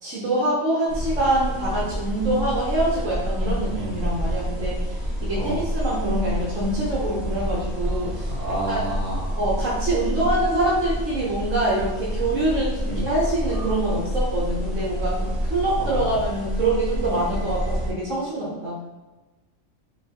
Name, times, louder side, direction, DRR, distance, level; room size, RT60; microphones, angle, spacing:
voice 1, 0.0-4.7 5.2-8.3 8.7-8.8 9.4-18.8, right 1 dB, 70° right, -5 dB, 1.2 m, -25 dB
sound 1, 0.9-17.9, equal, ahead, 0.9 m, -28 dB
voice 2, 8.2-9.3 12.8-13.1 15.8-16.1, right 1 dB, 30° right, -9 dB, 1.5 m, -30 dB
4.4 x 3.0 x 2.8 m, 1.1 s
omnidirectional pair, 1.4 m